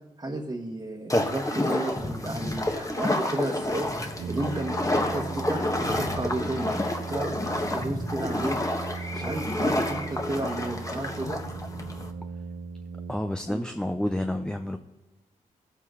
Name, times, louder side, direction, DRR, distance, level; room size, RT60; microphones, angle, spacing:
voice 1, 0.2-3.9 4.3-6.8 7.1-8.6 9.1-11.4 13.5-13.6, right 2 dB, 25° right, -2 dB, 1.6 m, -33 dB
sound 1, 1.1-12.1, left 1 dB, 20° left, 1.5 m, -29 dB
Brass instrument, 4.2-13.7, right 4 dB, 80° right, 0.5 m, -38 dB
voice 2, 13.1-14.8, left 1 dB, 5° left, 6 dB, 0.7 m, -29 dB
15.5 x 8.2 x 3.9 m, 1.1 s
supercardioid pair, 45°, 15 cm